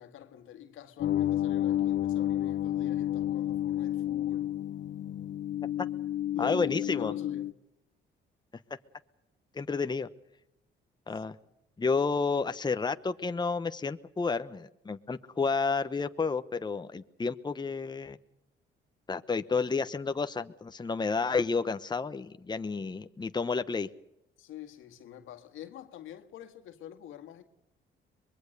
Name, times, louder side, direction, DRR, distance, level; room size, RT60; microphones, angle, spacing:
voice 1, 0.0-4.5 6.3-6.6 7.0-7.6 11.1-11.2 24.4-27.4, left 11 dB, 85° left, 2.0 m, -46 dB
sound 1, 1.0-7.5, left 12 dB, 60° left, 0.8 m, -30 dB
voice 2, 6.4-7.1 9.5-10.1 11.1-11.4 11.8-18.2 19.1-23.9, left 4 dB, 20° left, 1.0 m, -30 dB
24.0 x 21.5 x 6.7 m
cardioid pair, 90°, 20 cm